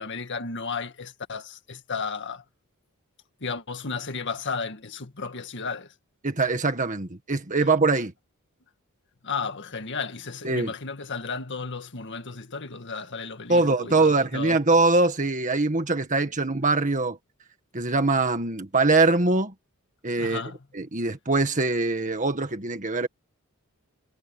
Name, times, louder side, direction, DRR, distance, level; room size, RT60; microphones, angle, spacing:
voice 1, 0.0-2.4 3.4-5.9 7.6-7.7 9.2-14.6 20.2-20.6, left 4 dB, 55° left, 1.9 m, -34 dB
voice 2, 6.2-8.1 10.4-10.7 13.5-17.2 17.7-19.5 20.0-20.4 20.7-23.1, right 3 dB, 35° right, 1.8 m, -23 dB
head